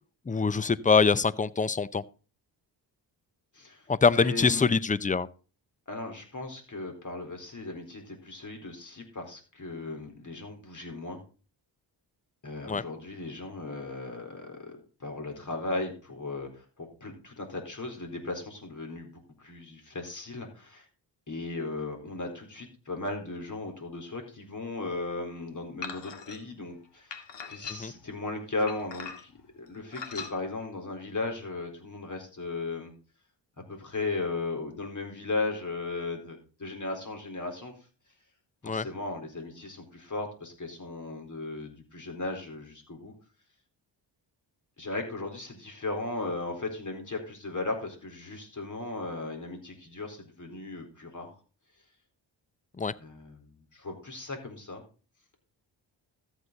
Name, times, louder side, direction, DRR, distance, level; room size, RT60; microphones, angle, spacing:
voice 1, 0.3-2.0 3.9-5.3 12.7-12.8 27.7-27.9 38.6-38.8 52.8-52.9, left 5 dB, 20° left, 0.6 m, -24 dB
voice 2, 3.5-3.9 4.1-4.7 5.9-11.2 12.4-20.9 21.3-32.9 33.7-37.7 38.6-43.1 44.8-51.3 53.0-54.8, left 3 dB, 40° left, 4.2 m, -36 dB
sound 1, 25.8-26.4 27.1-28.0 28.7-29.4 29.9-30.3, left 6 dB, 70° left, 2.0 m, -40 dB
13.5 x 8.1 x 4.0 m
cardioid pair, 75°, 44 cm